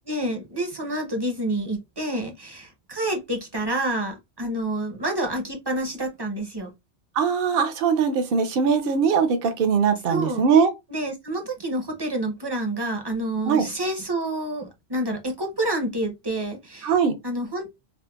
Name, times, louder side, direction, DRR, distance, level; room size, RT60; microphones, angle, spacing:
voice 1, 0.1-6.7 10.1-10.4 10.9-16.9 17.2-17.7, right 1 dB, 30° right, 0.6 m, -28 dB
voice 2, 7.2-10.7 13.5-13.6 16.8-17.1, right 6 dB, 60° right, 0.8 m, -21 dB
4.9 x 2.1 x 2.2 m
omnidirectional pair, 1.1 m